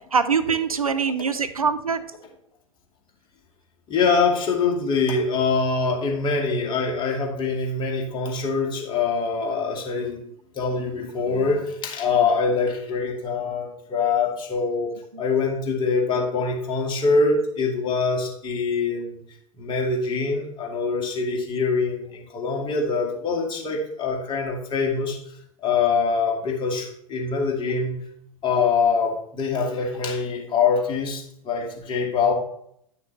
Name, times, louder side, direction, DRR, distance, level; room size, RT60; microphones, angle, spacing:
voice 1, 0.1-2.0 15.1-15.2, right 5 dB, 85° right, 11 dB, 0.6 m, -23 dB
voice 2, 3.9-10.2 10.6-14.9 15.2-19.2 19.6-25.2 25.6-28.0 28.4-32.3, left 4 dB, 25° left, 1 dB, 2.1 m, -24 dB
10.0 x 6.6 x 3.3 m, 0.70 s
figure-of-eight pair, 95°, 18 cm